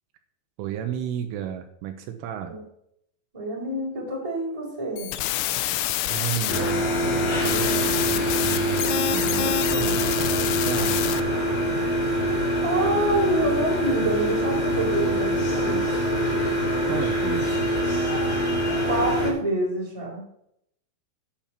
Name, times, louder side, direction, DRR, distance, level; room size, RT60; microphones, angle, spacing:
voice 1, 0.6-2.6 6.1-11.2 16.9-17.5, right 10 dB, 80° right, 7 dB, 3.3 m, -33 dB
voice 2, 3.3-5.1 11.8-11.9 12.3-16.1 18.9-20.3, right 1 dB, 5° right, -3 dB, 3.1 m, -27 dB
sound 1, 5.0-11.2, left 14 dB, 90° left, 3.3 m, -27 dB
sound 2, 6.5-19.3, equal, 45° left, 4.8 m, -24 dB
8.9 x 8.7 x 5.9 m, 0.74 s
omnidirectional pair, 5.8 m